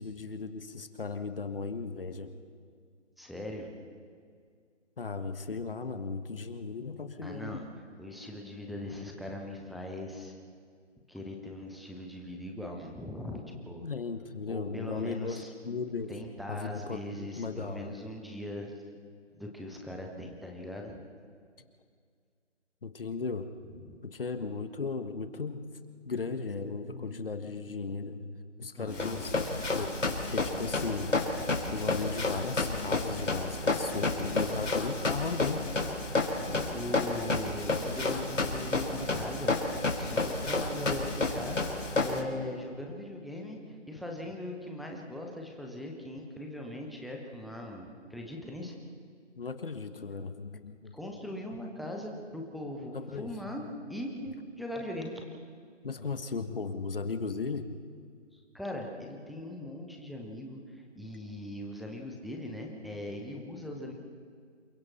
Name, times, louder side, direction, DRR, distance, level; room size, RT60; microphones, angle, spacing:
voice 1, 0.0-2.3 5.0-7.7 13.8-16.1 16.5-17.9 22.8-23.5 24.0-25.6 26.0-28.3 28.6-29.3 29.7-30.0 30.3-31.1 31.7-35.7 49.4-50.9 52.9-53.6 55.8-57.6, left 4 dB, 50° left, 8 dB, 1.5 m, -36 dB
voice 2, 3.2-3.7 7.2-10.4 11.1-13.9 14.5-15.5 16.1-18.7 19.4-21.0 23.8-24.0 28.7-29.5 36.4-41.6 42.0-48.8 50.9-53.6 53.9-55.2 58.3-63.9, left 1 dB, ahead, 0 dB, 0.5 m, -40 dB
Run, 28.9-42.2, left 3 dB, 85° left, 4.2 m, -31 dB
28.5 x 22.5 x 4.3 m, 2.1 s
hypercardioid pair, 170°, 37 cm